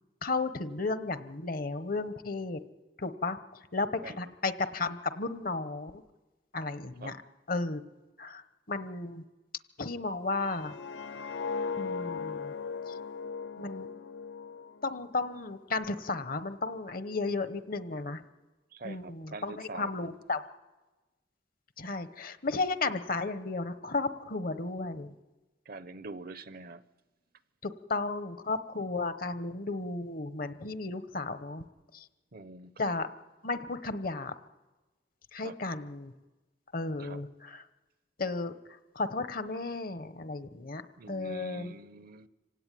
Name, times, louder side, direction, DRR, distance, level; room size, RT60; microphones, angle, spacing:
voice 1, 0.2-2.6 3.0-3.4 3.7-6.0 6.5-7.1 7.5-7.8 8.2-8.4 8.7-9.2 9.8-10.7 11.8-12.5 12.9-13.0 13.6-13.9 14.8-18.2 18.8-20.4 21.8-25.1 27.6-31.6 31.9-32.0 32.8-33.1 33.4-34.3 35.3-36.1 36.7-37.6 38.2-38.5 38.9-40.8 41.1-41.7, left 3 dB, 50° left, 1.0 m, -34 dB
voice 2, 4.0-4.3 7.0-7.2 18.7-20.2 25.7-26.8 32.3-33.0 35.4-35.6 37.0-37.2 41.0-42.3, right 3 dB, 55° right, 0.8 m, -45 dB
sound 1, 10.4-15.5 15.8-16.1, left 5 dB, 80° left, 0.7 m, -38 dB
26.0 x 17.0 x 9.1 m
head